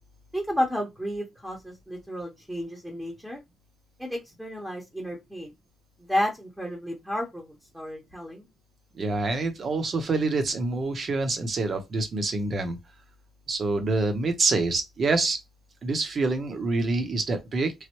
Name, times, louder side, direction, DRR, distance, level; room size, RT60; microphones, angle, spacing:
voice 1, 0.3-3.4 4.0-5.5 6.0-8.5, equal, ahead, 0.9 m, -32 dB
voice 2, 8.9-12.8 13.5-15.4 15.8-17.7, right 3 dB, 45° right, 0.8 m, -26 dB
3.2 x 2.1 x 2.9 m
cardioid pair, 90°, 0 cm